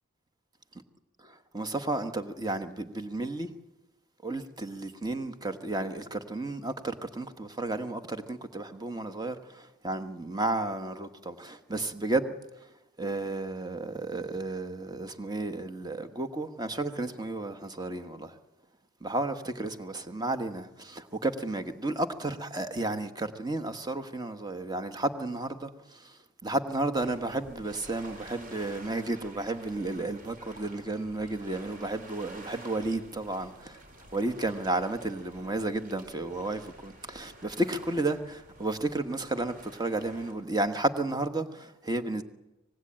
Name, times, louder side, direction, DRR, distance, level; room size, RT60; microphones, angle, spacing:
voice 1, 1.5-3.5 4.2-12.3 13.0-18.3 19.0-26.2 26.4-33.8 34.1-42.2, right 2 dB, 20° right, 1.3 m, -32 dB
sound 1, 27.0-40.3, right 1 dB, 40° right, 4.9 m, -50 dB
25.5 x 19.5 x 8.9 m
head